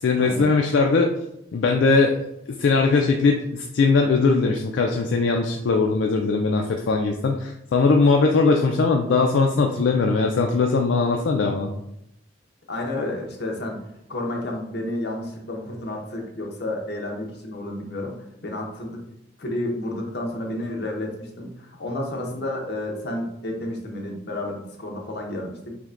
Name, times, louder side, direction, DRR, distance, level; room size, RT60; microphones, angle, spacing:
voice 1, 0.0-1.1 1.5-2.1 2.6-11.7, left 4 dB, 80° left, 2 dB, 0.4 m, -20 dB
voice 2, 12.7-13.8 14.1-19.0 19.4-25.8, left 1 dB, 60° left, 1 dB, 0.8 m, -31 dB
5.8 x 2.2 x 2.5 m, 0.81 s
head